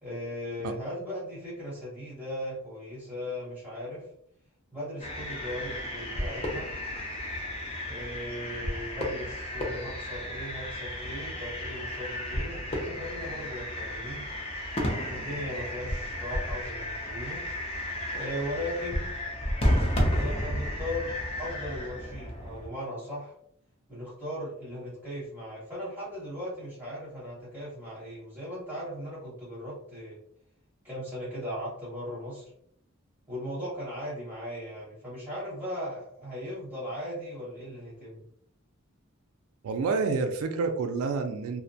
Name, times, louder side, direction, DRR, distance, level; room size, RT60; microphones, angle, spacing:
voice 1, 0.0-4.1 4.7-6.7 7.9-14.3 15.1-17.4 18.1-19.1 20.0-21.1 21.4-23.3 23.9-30.2 30.8-32.5 33.3-38.3, equal, 10° right, -9 dB, 0.8 m, -38 dB
sound 1, 5.0-22.7, left 1 dB, 30° left, 0.5 m, -32 dB
voice 2, 39.6-41.6, right 4 dB, 90° right, 6 dB, 0.3 m, -28 dB
2.5 x 2.1 x 2.6 m, 0.70 s
head